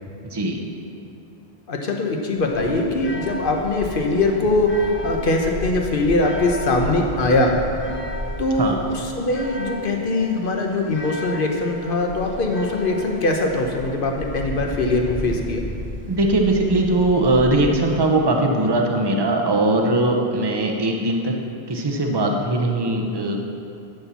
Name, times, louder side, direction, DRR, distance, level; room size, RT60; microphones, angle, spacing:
voice 1, 1.7-7.6 8.4-15.6, left 2 dB, 60° left, 2 dB, 1.2 m, -22 dB
sound 1, 2.4-18.2, equal, 15° left, 0.8 m, -34 dB
voice 2, 16.1-21.3 21.7-23.4, right 2 dB, 25° right, 2 dB, 0.8 m, -20 dB
13.0 x 4.5 x 7.0 m, 2.7 s
omnidirectional pair, 1.1 m